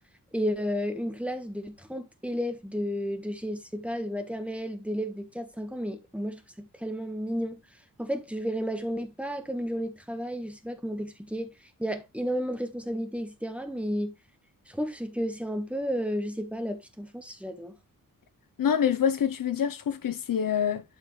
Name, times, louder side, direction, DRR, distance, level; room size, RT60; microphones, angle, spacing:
voice 1, 0.3-7.6 8.0-11.5 11.8-14.1 14.7-17.7, equal, 5° right, 1.4 m, -32 dB
voice 2, 18.6-20.8, left 8 dB, 75° left, 1.0 m, -26 dB
12.0 x 4.7 x 3.2 m
wide cardioid pair, 175°, 33 cm